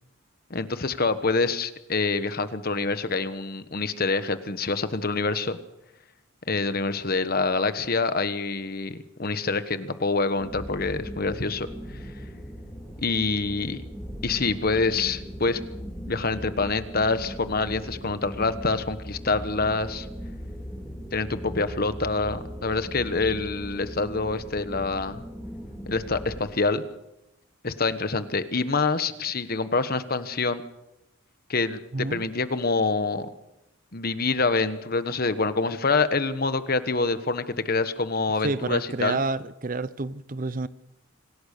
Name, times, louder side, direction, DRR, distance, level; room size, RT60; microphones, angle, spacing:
voice 1, 0.5-5.6 6.5-11.7 13.0-13.8 14.2-15.6 16.1-20.1 21.1-25.2 25.9-26.9 27.6-30.6 31.5-33.3 33.9-39.2, left 3 dB, 45° left, 1.2 m, -26 dB
sound 1, 10.4-26.4, equal, ahead, 3.7 m, -38 dB
voice 2, 31.9-32.3 38.4-40.7, right 3 dB, 40° right, 0.7 m, -29 dB
26.0 x 17.5 x 6.7 m
head